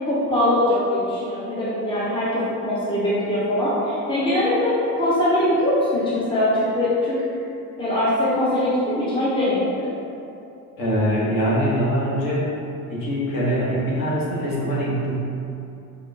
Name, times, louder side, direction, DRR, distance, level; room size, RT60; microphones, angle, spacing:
voice 1, 0.1-7.2 7.8-9.9, left 1 dB, 10° left, -9 dB, 0.7 m, -22 dB
voice 2, 10.8-12.5 12.9-15.3, equal, 45° left, -7 dB, 1.1 m, -23 dB
5.0 x 2.1 x 2.6 m, 2.7 s
figure-of-eight pair, 55°, 47 cm